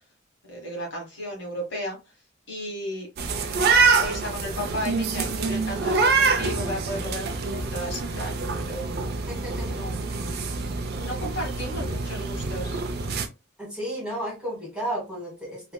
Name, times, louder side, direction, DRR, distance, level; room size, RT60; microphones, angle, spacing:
voice 1, 0.5-2.0 2.5-3.1 4.0-8.4 8.7-8.9 9.7-10.0 11.0-12.8, equal, 60° left, -1 dB, 1.4 m, -34 dB
sound 1, 3.2-13.3, right 4 dB, 50° right, 0.5 m, -26 dB
voice 2, 9.3-9.8 13.6-15.7, right 1 dB, 5° right, -5 dB, 1.5 m, -33 dB
3.2 x 2.6 x 2.2 m, 0.27 s
head